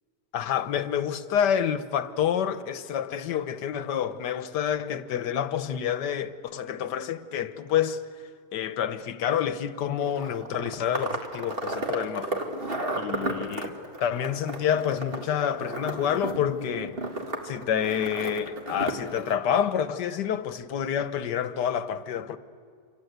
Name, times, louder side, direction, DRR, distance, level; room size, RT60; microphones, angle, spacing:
voice 1, 0.3-8.0 8.5-12.4 12.9-17.0 17.4-22.4, left 9 dB, 85° left, 1.5 m, -28 dB
sound 1, 10.0-19.4, right 2 dB, 35° right, 2.2 m, -34 dB
27.0 x 26.5 x 8.1 m
omnidirectional pair, 1.8 m